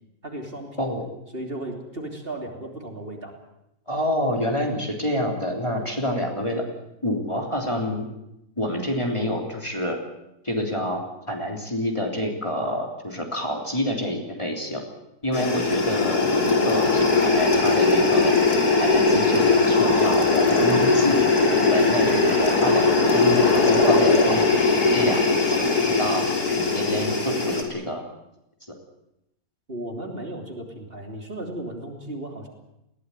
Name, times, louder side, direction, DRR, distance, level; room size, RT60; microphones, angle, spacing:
voice 1, 0.2-0.9 1.3-3.4 29.7-32.5, right 1 dB, 40° right, 2 dB, 3.4 m, -35 dB
voice 2, 0.8-1.1 3.9-6.6 7.0-8.0 8.6-10.0 10.4-14.8 15.2-18.3 18.8-21.2 21.6-24.4 24.8-26.3 26.6-28.0, equal, 20° left, 1 dB, 3.4 m, -27 dB
sound 1, 15.3-27.6, left 3 dB, 90° left, 3.7 m, -20 dB
21.0 x 17.0 x 9.7 m, 0.86 s
omnidirectional pair, 1.6 m